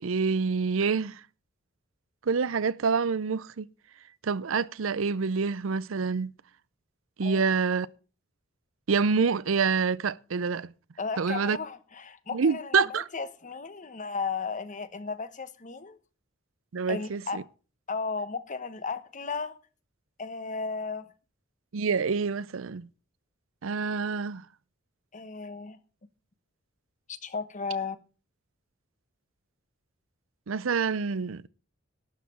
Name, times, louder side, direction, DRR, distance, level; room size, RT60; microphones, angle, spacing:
voice 1, 0.0-1.2 2.3-3.7 4.2-6.3 7.2-7.9 8.9-10.7 11.2-11.6 12.3-13.0 16.7-17.4 21.7-22.9 23.6-24.4 30.5-31.5, right 5 dB, 75° right, 0.5 m, -27 dB
voice 2, 11.0-16.0 16.9-17.4 17.9-19.6 20.2-21.1 25.1-25.8 27.1-28.0, left 5 dB, 40° left, 1.1 m, -34 dB
12.0 x 5.8 x 8.5 m
head